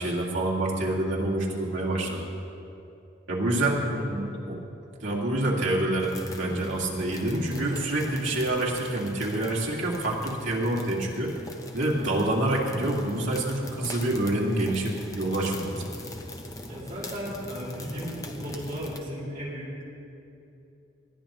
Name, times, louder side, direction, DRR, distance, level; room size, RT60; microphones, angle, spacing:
voice 1, 0.0-2.2 3.3-4.6 5.0-11.3 11.7-15.9, right 1 dB, 80° right, -3 dB, 2.1 m, -27 dB
voice 2, 3.6-4.1 16.7-19.8, equal, 45° right, -6 dB, 2.8 m, -36 dB
sound 1, 6.0-19.0, left 1 dB, 20° left, 0.7 m, -42 dB
19.5 x 12.0 x 3.0 m, 2.7 s
head